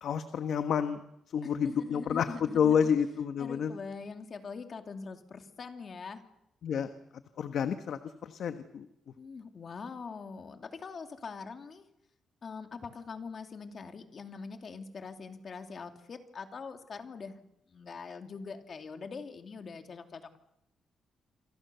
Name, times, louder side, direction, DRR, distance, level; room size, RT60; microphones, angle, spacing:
voice 1, 0.0-1.0 1.3-2.3 2.5-3.7 6.6-6.9 7.4-8.9, left 7 dB, 65° left, 9 dB, 1.4 m, -29 dB
voice 2, 1.4-2.9 3.4-6.2 9.2-11.8 12.4-17.4 17.7-20.4, left 5 dB, 45° left, 6 dB, 2.8 m, -43 dB
28.0 x 24.0 x 7.0 m, 0.81 s
cardioid pair, 120°, 0 cm